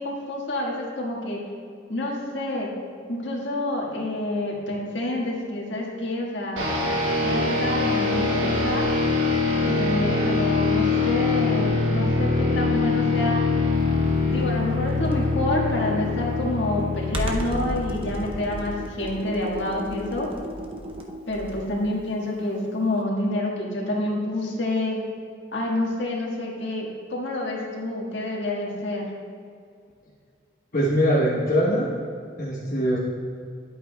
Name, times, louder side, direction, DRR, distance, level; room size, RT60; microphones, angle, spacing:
voice 1, 0.0-1.4 1.9-2.7 3.1-6.6 7.2-8.9 9.6-13.4 14.3-20.3 21.3-25.0 25.5-29.1, left 1 dB, 70° left, -3 dB, 1.6 m, -28 dB
sound 1, 6.6-18.8, left 3 dB, 80° right, 1.3 m, -24 dB
Computer keyboard, 14.9-21.8, equal, 30° right, 0.6 m, -34 dB
voice 2, 30.7-31.9 32.4-33.0, equal, 45° left, -8 dB, 1.1 m, -22 dB
11.0 x 8.5 x 2.3 m, 2.3 s
head